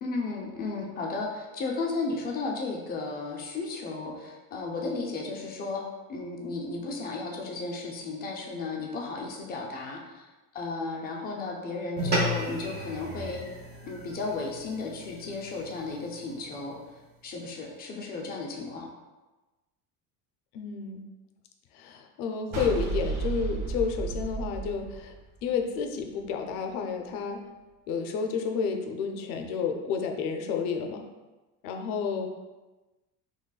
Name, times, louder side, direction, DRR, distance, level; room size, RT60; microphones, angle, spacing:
voice 1, 0.0-5.8 6.1-10.2 10.5-13.4 13.9-16.7 17.2-18.9, left 3 dB, 25° left, 0 dB, 0.4 m, -34 dB
sound 1, 12.0-16.6, equal, 25° right, 0.7 m, -34 dB
voice 2, 20.5-21.0 21.7-25.1 25.4-27.4 27.9-31.0 31.6-32.3, left 6 dB, 75° left, 4 dB, 0.6 m, -30 dB
sound 2, 22.5-25.8, right 4 dB, 60° right, 1.1 m, -32 dB
3.9 x 3.0 x 2.3 m, 1.1 s
cardioid pair, 160°, 37 cm